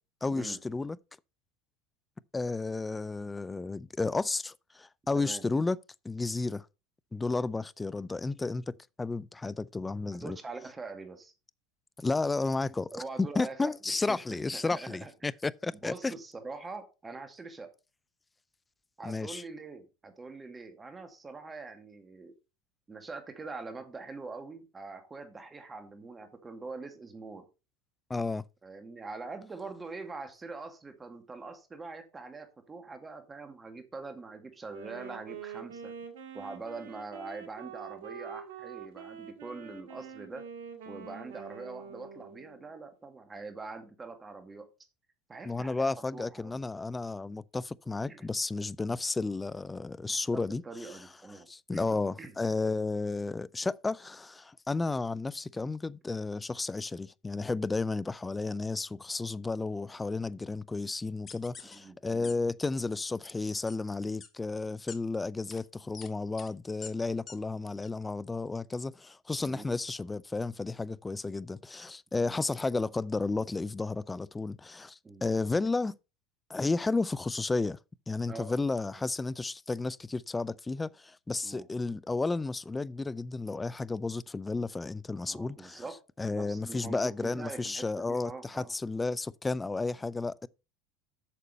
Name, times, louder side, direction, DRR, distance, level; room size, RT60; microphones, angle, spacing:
voice 1, 0.2-1.0 2.3-5.8 6.0-6.6 7.1-10.4 12.0-12.9 13.2-16.1 19.0-19.4 28.1-28.4 45.4-50.6 51.5-76.0 76.5-77.8 78.1-85.8 86.2-90.5, left 3 dB, 15° left, 0.4 m, -32 dB
voice 2, 10.1-11.3 12.9-14.2 14.5-15.1 15.8-17.7 19.0-22.3 22.9-27.5 28.6-35.9 36.3-40.5 40.9-44.7 45.3-46.6 48.1-48.3 50.3-52.4 61.7-62.3 69.4-69.8 72.1-72.4 75.0-75.3 78.3-78.6 78.9-79.1 81.4-81.7 85.2-86.0 86.3-88.7, right 3 dB, 20° right, 2.1 m, -44 dB
Wind instrument woodwind instrument, 34.7-42.7, right 7 dB, 75° right, 1.9 m, -45 dB
sound 1, 61.3-61.7 62.2-62.3 62.6-63.0 63.7-63.8 64.2-64.3 64.9-65.0 65.5-65.6 65.9-66.1 66.4-66.5 66.8-66.9 67.3-67.4 67.8-67.9, left 6 dB, 30° left, 1.3 m, -45 dB
8.6 x 6.7 x 4.2 m
hypercardioid pair, 85°, 0 cm